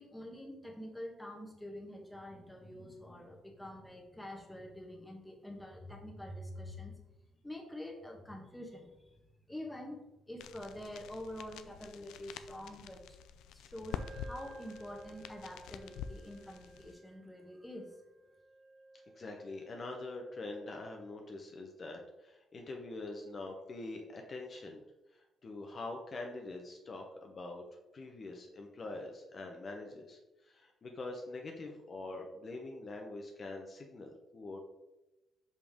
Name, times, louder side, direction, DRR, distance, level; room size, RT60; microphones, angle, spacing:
voice 1, 0.0-7.0 7.4-9.2 9.5-13.2 13.5-17.9, left 1 dB, 5° left, 1 dB, 1.3 m, -46 dB
sound 1, 10.4-16.9, left 8 dB, 90° left, 0.3 m, -47 dB
Wind instrument woodwind instrument, 13.9-21.2, right 2 dB, 70° right, 1.0 m, -56 dB
voice 2, 19.1-24.8 25.1-27.6 27.9-34.6, left 2 dB, 40° left, 2 dB, 0.8 m, -44 dB
5.4 x 5.0 x 3.6 m, 1.0 s
cardioid pair, 90°, 0 cm